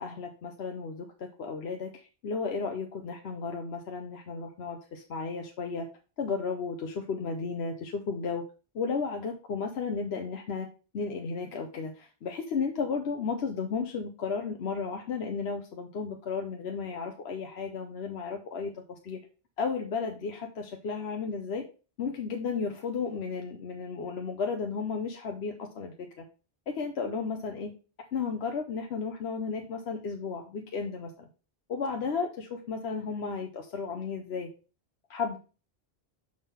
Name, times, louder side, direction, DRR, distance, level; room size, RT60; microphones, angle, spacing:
voice 1, 0.0-5.9 6.2-8.4 8.7-10.7 10.9-19.2 19.6-21.6 22.0-26.2 26.7-27.7 28.1-31.3 31.7-34.5 35.1-35.4, left 5 dB, 80° left, 3 dB, 1.1 m, -34 dB
6.5 x 3.7 x 5.5 m, 0.35 s
omnidirectional pair, 1.1 m